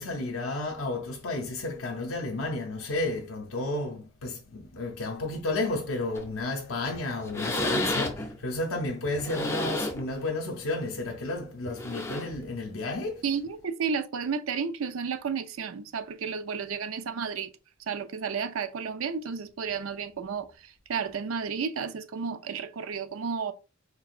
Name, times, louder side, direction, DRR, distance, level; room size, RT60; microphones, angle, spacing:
voice 1, 0.0-13.2, left 2 dB, 70° left, 0.6 m, -32 dB
sound 1, 6.2-6.4 6.9-7.0 7.3-8.4 9.0-10.1 10.6-10.8 11.7-12.4 13.5-13.6, left 1 dB, 15° left, 0.6 m, -31 dB
voice 2, 13.2-17.5 17.9-23.5, right 6 dB, 85° right, 0.5 m, -32 dB
4.5 x 3.3 x 2.4 m
head